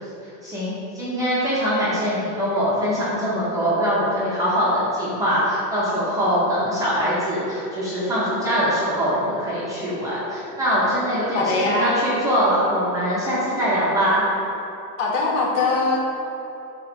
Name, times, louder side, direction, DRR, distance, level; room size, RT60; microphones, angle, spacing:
voice 1, 0.4-14.2, equal, 5° right, -10 dB, 0.5 m, -22 dB
voice 2, 11.3-12.0 15.0-16.0, left 3 dB, 45° left, -2 dB, 1.5 m, -21 dB
7.9 x 2.9 x 5.8 m, 3.0 s
supercardioid pair, 165°, 49 cm